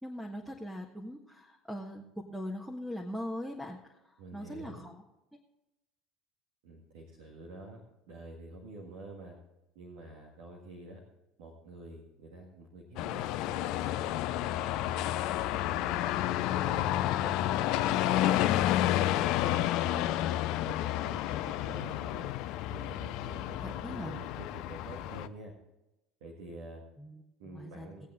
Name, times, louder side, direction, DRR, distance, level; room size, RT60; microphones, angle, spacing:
voice 1, 0.0-4.0 4.3-5.0 23.6-24.2 27.0-28.1, equal, ahead, 1 dB, 1.5 m, -41 dB
voice 2, 4.2-4.9 6.6-7.8 8.1-9.4 9.8-11.0 11.4-15.1 15.6-19.1 19.5-20.8 21.0-22.3 22.7-25.5 26.2-26.8 27.4-28.1, right 2 dB, 70° right, -1 dB, 1.9 m, -48 dB
sound 1, 13.0-25.3, left 13 dB, 60° left, 0.5 m, -30 dB
18.5 x 8.3 x 3.7 m, 0.92 s
figure-of-eight pair, 65°, 0 cm